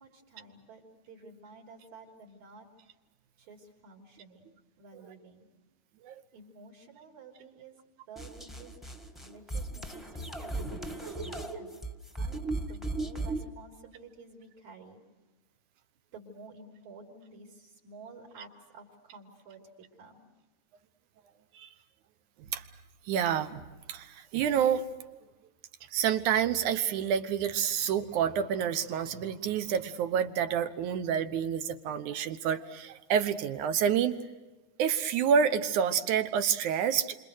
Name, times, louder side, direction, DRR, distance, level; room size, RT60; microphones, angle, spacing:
voice 1, 0.0-2.7 3.4-4.5 4.8-5.5 6.3-7.8 8.1-8.8 9.2-11.8 12.2-15.0 16.1-20.3, right 3 dB, 75° right, -1 dB, 4.7 m, -52 dB
sound 1, 8.2-13.5, right 2 dB, ahead, 0.7 m, -36 dB
voice 2, 23.1-25.2 25.9-34.1 34.8-37.2, right 8 dB, 90° right, 10 dB, 2.6 m, -28 dB
28.5 x 26.0 x 6.4 m, 1.2 s
omnidirectional pair, 3.3 m